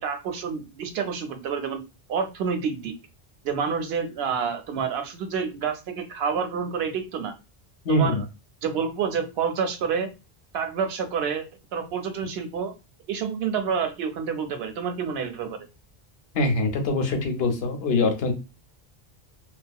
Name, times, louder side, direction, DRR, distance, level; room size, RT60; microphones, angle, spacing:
voice 1, 0.0-1.8 2.1-2.9 3.4-7.3 7.9-8.2 8.6-10.1 10.5-11.4 11.7-12.7 13.1-15.7, right 6 dB, 75° right, 7 dB, 0.8 m, -28 dB
voice 2, 7.8-8.2 16.3-18.3, left 2 dB, 75° left, 5 dB, 0.9 m, -23 dB
2.7 x 2.2 x 2.2 m, 0.28 s
omnidirectional pair, 1.0 m